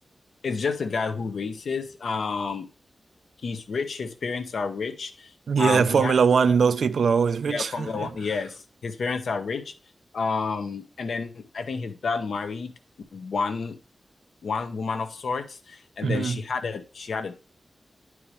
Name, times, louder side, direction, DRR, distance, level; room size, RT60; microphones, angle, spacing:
voice 1, 0.4-2.7 3.4-5.3 5.6-6.1 7.5-9.7 10.1-12.7 13.1-13.8 14.4-17.3, left 4 dB, 80° left, 1.0 m, -30 dB
voice 2, 5.5-8.1 16.0-16.4, right 6 dB, 85° right, 0.4 m, -21 dB
9.7 x 4.7 x 3.2 m
wide cardioid pair, 170°, 0 cm